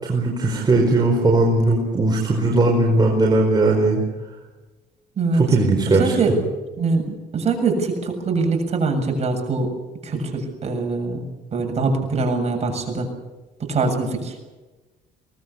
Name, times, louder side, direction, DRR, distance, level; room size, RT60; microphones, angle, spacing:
voice 1, 0.0-4.0 5.3-6.1, right 2 dB, 25° right, -1 dB, 5.1 m, -18 dB
voice 2, 5.9-6.3 6.8-9.7 10.0-11.2 11.5-13.1 13.6-14.4, right 3 dB, 40° right, 3 dB, 7.4 m, -23 dB
24.0 x 20.0 x 8.5 m, 1.2 s
cardioid pair, 110°, 17 cm